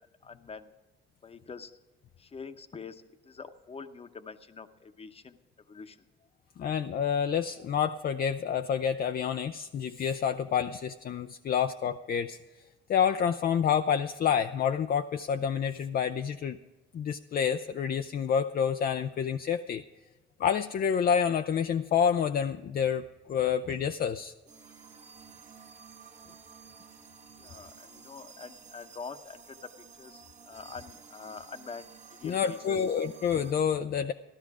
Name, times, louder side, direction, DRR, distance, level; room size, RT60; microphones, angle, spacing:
voice 1, 0.2-0.7 1.2-1.7 2.2-5.4 5.7-6.0 27.4-32.8, left 5 dB, 30° left, 9 dB, 0.9 m, -45 dB
voice 2, 6.6-12.4 12.9-16.6 16.9-19.8 20.4-24.3 32.2-34.1, left 7 dB, 50° left, 8 dB, 0.5 m, -28 dB
sound 1, 24.4-33.5, right 6 dB, 35° right, 1.4 m, -52 dB
13.5 x 12.5 x 4.8 m, 1.1 s
cardioid pair, 90°, 20 cm